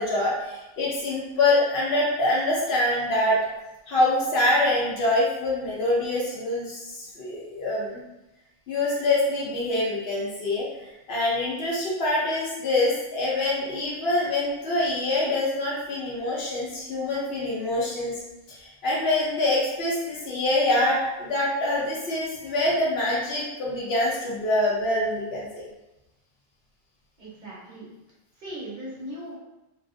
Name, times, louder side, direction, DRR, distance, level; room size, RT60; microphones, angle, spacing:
voice 1, 0.0-3.5 3.9-8.0 8.7-18.2 18.5-25.6, left 2 dB, 75° left, -5 dB, 0.9 m, -25 dB
voice 2, 27.2-27.9 28.4-29.4, right 1 dB, 50° right, -7 dB, 1.1 m, -38 dB
3.0 x 2.5 x 2.4 m, 0.97 s
omnidirectional pair, 1.0 m